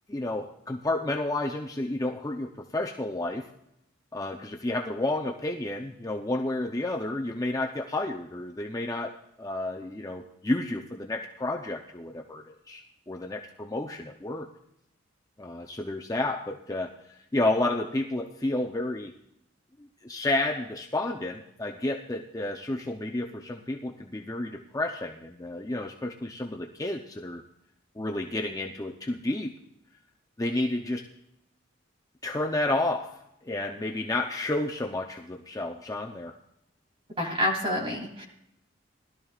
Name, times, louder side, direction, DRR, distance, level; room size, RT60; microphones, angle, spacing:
voice 1, 0.1-3.4 4.1-9.1 9.4-14.5 15.4-19.1 19.8-27.4 28.0-29.5 30.4-31.1 32.2-33.1 33.5-36.3, left 2 dB, 15° left, 1 dB, 0.6 m, -31 dB
voice 2, 37.2-38.2, equal, 25° right, 0 dB, 3.1 m, -28 dB
20.0 x 12.5 x 2.4 m, 0.79 s
head